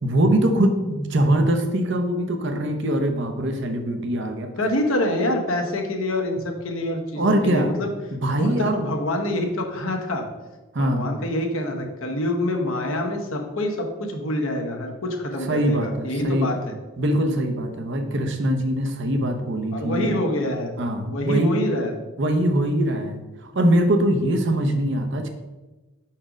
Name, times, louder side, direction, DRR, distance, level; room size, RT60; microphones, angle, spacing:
voice 1, 0.0-4.5 7.2-7.7 8.1-8.8 10.7-11.1 15.5-16.5 17.0-20.1 20.8-21.6 22.2-25.3, right 1 dB, 55° right, 6 dB, 0.7 m, -22 dB
voice 2, 4.6-7.9 8.3-10.2 10.8-16.6 19.7-20.7 21.1-21.9, left 1 dB, 75° left, 3 dB, 1.0 m, -26 dB
4.8 x 4.3 x 5.0 m, 1.2 s
head